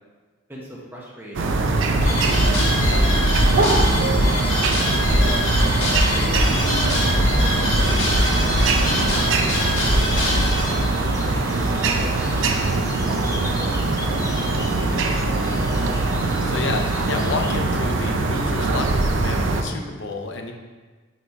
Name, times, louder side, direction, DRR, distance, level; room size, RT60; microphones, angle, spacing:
voice 1, 0.5-2.1 2.6-4.4 4.8-5.5 6.1-15.3, equal, 10° right, -4 dB, 0.8 m, -38 dB
sound 1, 1.3-19.6, right 2 dB, 75° right, 0.5 m, -22 dB
sound 2, 2.0-10.7, left 1 dB, 90° left, 1.7 m, -22 dB
sound 3, 10.0-17.6, left 2 dB, 15° left, 0.5 m, -38 dB
voice 2, 16.4-20.5, left 3 dB, 65° left, 3 dB, 0.6 m, -29 dB
5.2 x 4.3 x 4.6 m, 1.4 s
head